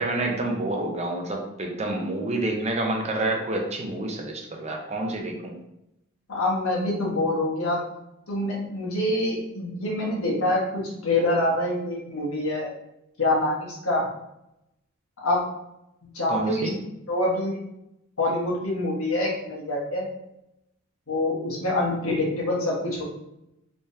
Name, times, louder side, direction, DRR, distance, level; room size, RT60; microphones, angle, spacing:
voice 1, 0.0-5.6 16.3-16.8, right 2 dB, 30° right, 1 dB, 0.6 m, -28 dB
voice 2, 6.3-7.8 8.3-12.7 13.2-14.0 15.2-15.4 16.0-16.7 17.1-17.6 18.2-20.1 21.1-23.0, left 1 dB, 80° left, -3 dB, 1.2 m, -25 dB
3.4 x 3.2 x 2.7 m, 0.84 s
head